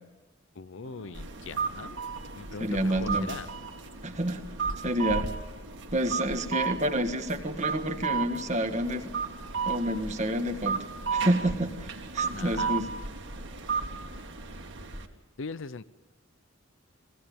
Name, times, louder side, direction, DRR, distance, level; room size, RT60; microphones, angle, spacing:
voice 1, 0.6-2.0 2.4-3.5 12.3-12.8 15.4-15.8, left 4 dB, 65° left, 15 dB, 0.6 m, -40 dB
sound 1, 0.8-14.9, right 1 dB, 85° right, 2.3 m, -50 dB
sound 2, 1.1-15.1, right 5 dB, 60° right, 2.2 m, -34 dB
voice 2, 2.6-3.3 4.0-4.4 4.8-5.3 5.9-9.1 9.6-10.8 11.1-11.9 12.1-12.9, right 1 dB, 35° right, 6 dB, 1.6 m, -28 dB
23.5 x 17.5 x 8.7 m, 1.2 s
head